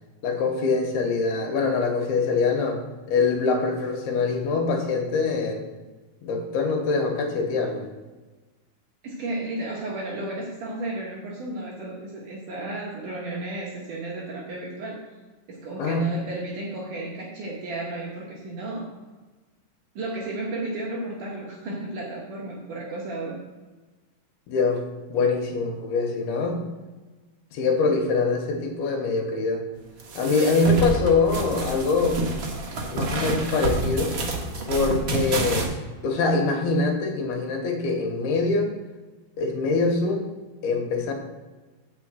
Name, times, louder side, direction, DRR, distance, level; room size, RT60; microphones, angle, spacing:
voice 1, 0.2-2.8 3.1-5.6 6.2-7.8 15.8-16.1 24.5-24.8 25.1-26.6 27.5-29.6 30.1-32.2 32.9-34.1 34.7-35.7 36.0-38.7 39.4-40.3 40.6-41.1, left 4 dB, 85° left, 3 dB, 3.2 m, -24 dB
voice 2, 9.0-15.1 15.5-18.9 20.0-23.4, right 2 dB, 65° right, -3 dB, 2.5 m, -33 dB
sound 1, 30.0-35.6, right 2 dB, 90° right, 1.1 m, -28 dB
8.0 x 5.2 x 7.6 m, 1.3 s
omnidirectional pair, 4.5 m